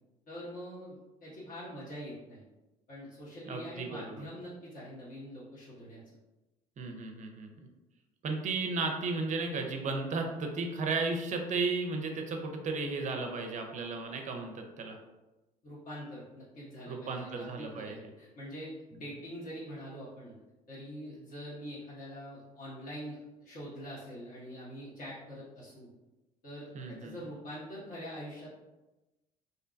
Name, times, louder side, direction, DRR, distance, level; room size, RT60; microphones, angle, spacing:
voice 1, 0.3-2.4 2.9-6.0 15.6-18.7 19.0-20.3 20.7-25.9 26.4-28.5, equal, 45° left, -8 dB, 1.0 m, -44 dB
voice 2, 3.5-4.3 6.8-7.5 8.2-15.0 16.9-18.0 26.7-27.1, right 3 dB, 40° right, 3 dB, 0.5 m, -34 dB
2.6 x 2.2 x 2.5 m, 1.0 s
hypercardioid pair, 65°, 19 cm